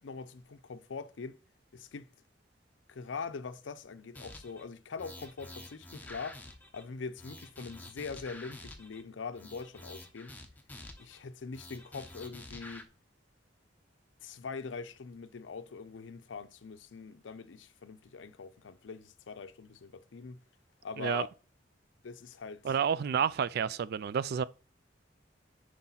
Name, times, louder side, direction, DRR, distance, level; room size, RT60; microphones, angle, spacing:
voice 1, 0.0-1.4 1.7-2.1 2.9-6.4 6.7-10.3 11.0-12.9 14.2-20.4 20.8-21.3 22.0-22.7, left 5 dB, 90° left, 0.5 m, -43 dB
sound 1, 4.1-4.6 5.0-6.8 7.2-9.0 9.3-11.2 11.5-12.8, left 1 dB, 10° left, 0.8 m, -48 dB
voice 2, 21.0-21.3 22.6-24.4, right 7 dB, 60° right, 0.3 m, -30 dB
5.6 x 4.8 x 3.9 m
head